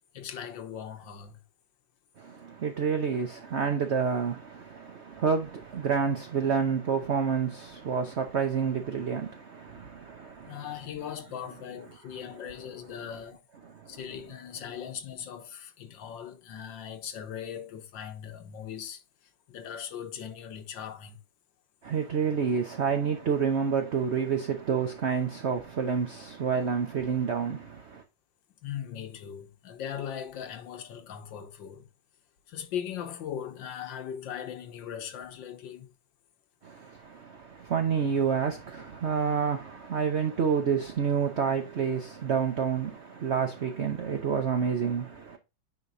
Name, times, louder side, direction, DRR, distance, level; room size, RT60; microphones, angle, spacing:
voice 1, 0.1-1.4 10.5-21.2 28.6-31.9 32.5-35.9, left 9 dB, 70° left, 1.5 m, -39 dB
voice 2, 2.2-10.7 13.7-14.0 21.8-28.0 36.6-45.4, right 6 dB, 55° right, 0.7 m, -29 dB
9.2 x 5.2 x 2.7 m
omnidirectional pair, 2.2 m